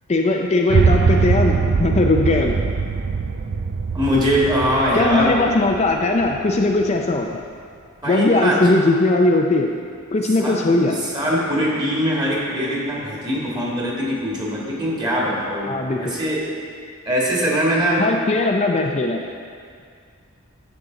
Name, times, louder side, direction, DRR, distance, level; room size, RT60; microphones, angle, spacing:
voice 1, 0.1-2.6 4.9-7.4 8.1-9.7 10.1-11.0 15.7-16.0 18.0-19.2, left 2 dB, 30° left, 1 dB, 0.5 m, -19 dB
sound 1, 0.7-6.9, right 5 dB, 55° right, 0.4 m, -21 dB
voice 2, 3.9-5.4 8.0-8.6 10.4-10.6 10.9-16.4 17.1-18.1, equal, 20° right, -5 dB, 1.9 m, -22 dB
10.5 x 7.6 x 3.9 m, 2.2 s
head